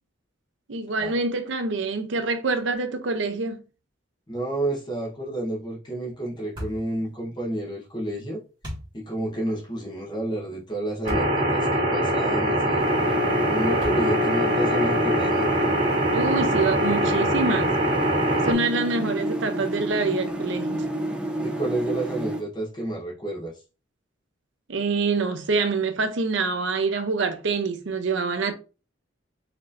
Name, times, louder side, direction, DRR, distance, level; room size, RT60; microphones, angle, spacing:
voice 1, 0.7-3.6 16.1-17.7 18.4-20.8 24.7-28.5, right 3 dB, 70° right, 0.6 m, -26 dB
voice 2, 4.3-8.4 8.9-13.0 13.5-15.5 21.4-23.5, right 1 dB, 25° left, 1.0 m, -30 dB
sound 1, 6.6-6.9 8.6-8.9 11.1-11.4 12.0-12.1 13.8-14.3, equal, 25° right, 1.9 m, -34 dB
sound 2, 11.0-18.5, equal, 45° right, 2.0 m, -23 dB
sound 3, 12.8-22.4, right 1 dB, 5° right, 0.6 m, -30 dB
4.3 x 3.1 x 2.5 m
head